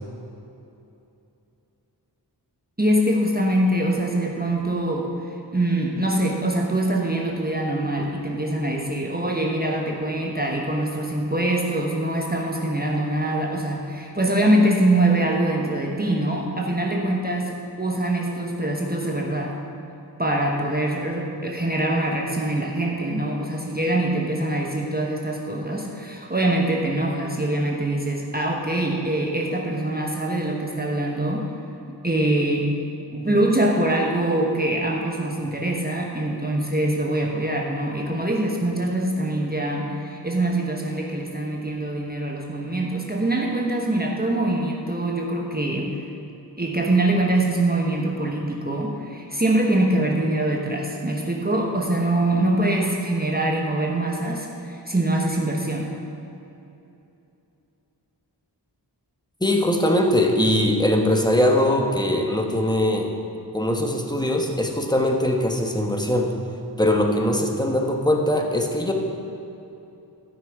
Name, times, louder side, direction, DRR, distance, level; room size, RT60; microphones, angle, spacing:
voice 1, 2.8-5.1 5.5-19.6 20.2-31.5 31.9-32.8 33.1-46.0 46.6-55.9, right 1 dB, 20° right, -1 dB, 1.0 m, -24 dB
voice 2, 59.4-63.1 63.5-66.3 66.8-68.9, left 1 dB, 10° left, 2 dB, 1.2 m, -21 dB
13.5 x 6.0 x 4.7 m, 2.8 s
wide cardioid pair, 45°, 43 cm